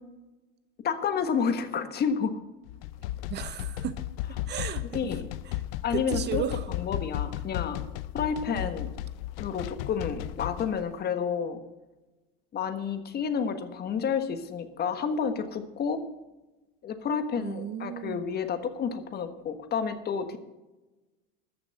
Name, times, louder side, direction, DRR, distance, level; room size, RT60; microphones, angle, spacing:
voice 1, 0.8-2.4 4.9-5.3 5.8-6.4 6.7-7.8 8.1-8.9 9.4-11.6 12.5-16.0 16.8-20.4, left 6 dB, 35° left, 9 dB, 1.4 m, -30 dB
sound 1, 2.7-10.8, left 14 dB, 75° left, 0.6 m, -35 dB
voice 2, 3.3-4.0 4.5-4.8 5.5-5.6 5.9-6.7 8.5-8.7 17.4-18.2, right 9 dB, 35° right, 12 dB, 0.8 m, -34 dB
14.0 x 6.1 x 9.0 m, 1.1 s
supercardioid pair, 120°, 29 cm